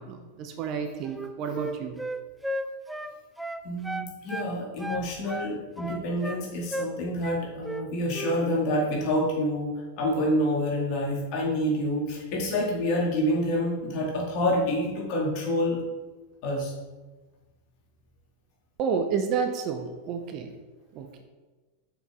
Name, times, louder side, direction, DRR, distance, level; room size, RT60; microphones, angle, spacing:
voice 1, 0.0-2.0 18.8-20.5 20.9-21.2, right 6 dB, 40° right, 6 dB, 0.7 m, -30 dB
Wind instrument woodwind instrument, 1.0-4.5 4.8-6.4 6.7-6.9 7.2-7.9 8.1-8.4, right 1 dB, 5° right, 0.4 m, -34 dB
voice 2, 3.6-9.7 10.0-15.8 16.4-16.7, left 1 dB, 40° left, -3 dB, 2.3 m, -27 dB
6.6 x 5.6 x 3.7 m, 1.3 s
figure-of-eight pair, 90°, 0 cm